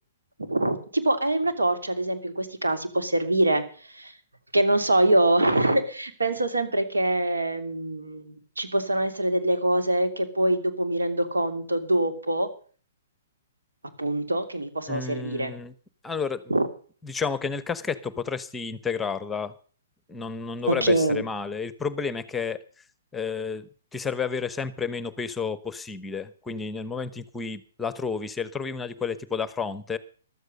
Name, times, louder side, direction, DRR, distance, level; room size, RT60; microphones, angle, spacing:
voice 1, 0.4-4.1 4.5-12.5 14.0-15.5 16.5-16.7 20.7-21.2, right 1 dB, 80° right, 7 dB, 2.9 m, -24 dB
voice 2, 14.9-15.7 16.0-16.5 17.0-19.5 20.1-22.6 23.1-30.0, left 5 dB, 10° left, 16 dB, 0.9 m, -31 dB
14.5 x 13.0 x 5.4 m, 0.42 s
figure-of-eight pair, 120°, 0 cm